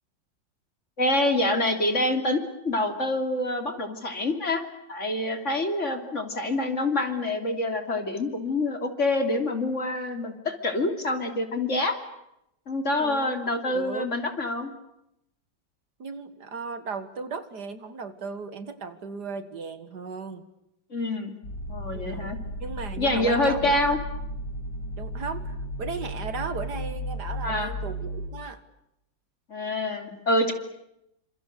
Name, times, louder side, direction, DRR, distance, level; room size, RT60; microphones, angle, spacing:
voice 1, 1.0-4.6 4.9-11.9 12.7-14.7 20.9-21.3 21.7-22.4 23.0-24.0 27.4-27.7 29.5-30.5, left 1 dB, 40° left, 6 dB, 3.4 m, -26 dB
voice 2, 13.0-14.1 16.0-20.4 21.9-22.3 22.6-24.0 25.0-28.6, right 5 dB, 60° right, 11 dB, 2.1 m, -36 dB
sound 1, 21.4-28.3, equal, 70° left, 8.1 m, -34 dB
29.5 x 26.5 x 6.7 m, 0.82 s
omnidirectional pair, 2.0 m